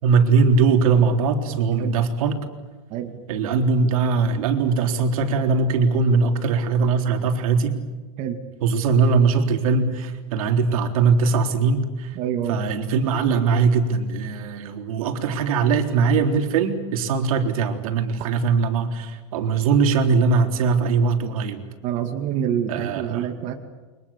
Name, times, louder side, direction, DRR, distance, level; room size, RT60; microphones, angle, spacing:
voice 1, 0.0-2.4 3.3-7.8 8.6-12.2 12.5-21.6 22.7-23.3, right 5 dB, 85° right, 5 dB, 3.8 m, -21 dB
voice 2, 2.9-3.2 8.2-8.4 12.2-12.6 21.8-23.5, right 9 dB, 40° right, 5 dB, 2.3 m, -27 dB
29.0 x 24.5 x 7.3 m, 1.3 s
supercardioid pair, 160°, 18 cm